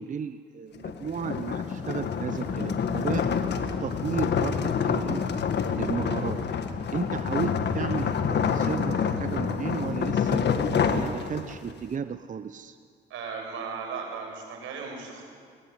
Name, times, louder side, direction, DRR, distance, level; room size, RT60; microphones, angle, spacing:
voice 1, 0.0-3.3 3.8-5.3 5.8-6.4 6.9-10.4 10.9-12.8, right 6 dB, 40° right, 10 dB, 0.8 m, -34 dB
sound 1, 0.8-11.7, left 6 dB, 60° left, 1.6 m, -27 dB
sound 2, 2.3-11.1, left 1 dB, 5° left, 5.0 m, -46 dB
voice 2, 13.1-15.2, right 5 dB, 85° right, 1 dB, 6.5 m, -36 dB
20.0 x 19.0 x 9.8 m, 2.1 s
cardioid pair, 90°, 20 cm